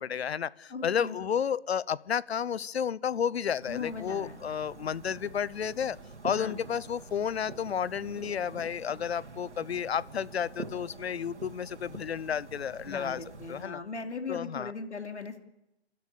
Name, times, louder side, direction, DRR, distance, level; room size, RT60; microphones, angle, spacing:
voice 1, 0.0-6.0 6.2-13.8 14.3-14.7, left 8 dB, 65° left, 21 dB, 0.8 m, -32 dB
voice 2, 0.7-1.1 3.7-4.4 6.4-6.5 12.9-15.4, left 4 dB, 80° left, 6 dB, 2.9 m, -38 dB
sound 1, 3.6-13.7, right 3 dB, 85° right, 3.3 m, -46 dB
29.0 x 12.5 x 8.5 m, 0.93 s
figure-of-eight pair, 140°, 34 cm